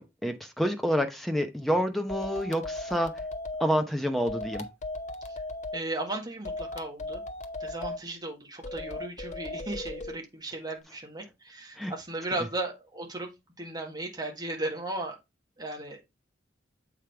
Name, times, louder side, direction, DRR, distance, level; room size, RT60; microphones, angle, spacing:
voice 1, 0.0-3.2 3.6-4.7 11.8-11.9, equal, ahead, 0.8 m, -28 dB
sound 1, 2.1-3.6 4.3-5.8 6.4-8.0 8.6-10.1, left 2 dB, 35° left, 0.7 m, -37 dB
voice 2, 5.7-7.2 7.6-13.3 13.6-15.1 15.6-16.1, right 2 dB, 20° right, 1.7 m, -36 dB
7.5 x 5.0 x 3.4 m
head